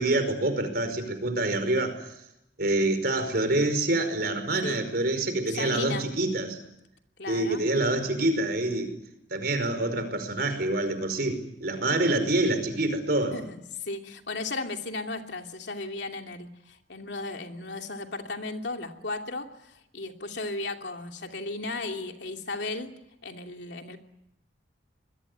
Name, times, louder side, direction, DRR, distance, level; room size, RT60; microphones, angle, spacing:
voice 1, 0.0-2.0 2.6-6.6 7.3-8.9 9.3-13.3, right 2 dB, 60° right, 9 dB, 5.2 m, -26 dB
voice 2, 5.5-6.1 7.2-7.6 13.3-22.9 23.2-24.0, left 2 dB, 75° left, 4 dB, 2.8 m, -35 dB
27.0 x 21.5 x 8.1 m, 0.83 s
head